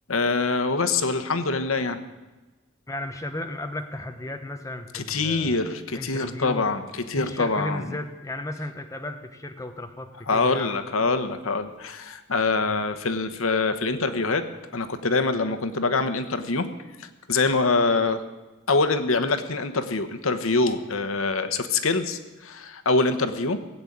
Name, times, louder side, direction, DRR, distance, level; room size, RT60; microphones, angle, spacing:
voice 1, 0.1-2.0 4.9-7.8 10.3-14.5 14.7-16.7 17.0-18.2 18.7-23.6, left 3 dB, 85° left, 10 dB, 1.1 m, -24 dB
voice 2, 2.9-5.6 5.9-6.7 7.2-10.8 12.6-12.8, left 1 dB, 15° left, 5 dB, 0.9 m, -34 dB
17.5 x 8.1 x 8.7 m, 1.2 s
head